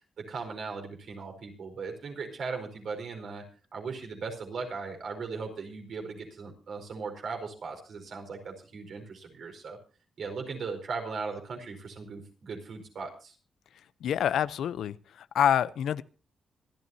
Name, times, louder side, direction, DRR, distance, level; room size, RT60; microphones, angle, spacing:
voice 1, 0.3-3.4 3.7-9.8 10.2-13.3, right 4 dB, 65° right, 4.6 m, -38 dB
voice 2, 14.0-16.0, left 9 dB, 85° left, 0.6 m, -27 dB
25.5 x 12.5 x 2.8 m
wide cardioid pair, 130°, 0 cm